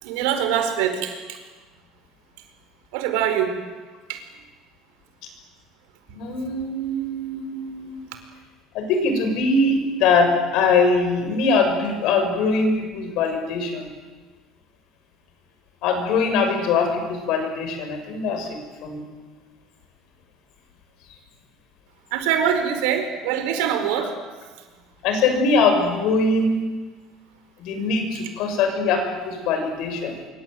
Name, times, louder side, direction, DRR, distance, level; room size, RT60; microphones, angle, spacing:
voice 1, 0.0-1.4 2.9-3.6 4.1-4.2 22.1-24.1, right 8 dB, 90° right, 7 dB, 4.8 m, -23 dB
voice 2, 6.1-8.0 8.7-13.9 15.8-19.0 25.0-26.6 27.6-30.1, left 3 dB, 55° left, 5 dB, 6.7 m, -22 dB
26.0 x 24.0 x 9.4 m, 1.3 s
cardioid pair, 175°, 0 cm